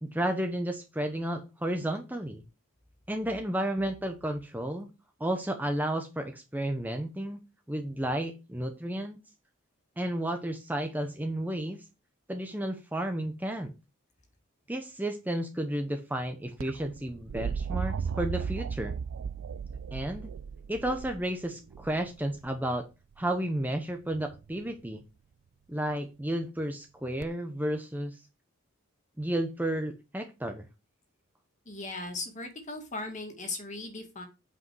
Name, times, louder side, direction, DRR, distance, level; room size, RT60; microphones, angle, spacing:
voice 1, 0.0-2.4 3.1-4.9 5.2-7.4 7.7-9.2 10.0-11.8 12.3-13.7 14.7-18.9 19.9-20.3 20.7-22.9 23.2-25.0 25.7-28.2 29.2-30.7, right 1 dB, 10° right, 5 dB, 0.9 m, -32 dB
sound 1, 16.6-22.5 24.1-24.6 27.2-27.3, right 6 dB, 75° right, 0.4 m, -36 dB
voice 2, 31.7-34.3, left 3 dB, 35° left, 4 dB, 2.1 m, -38 dB
8.6 x 5.3 x 4.7 m, 0.27 s
head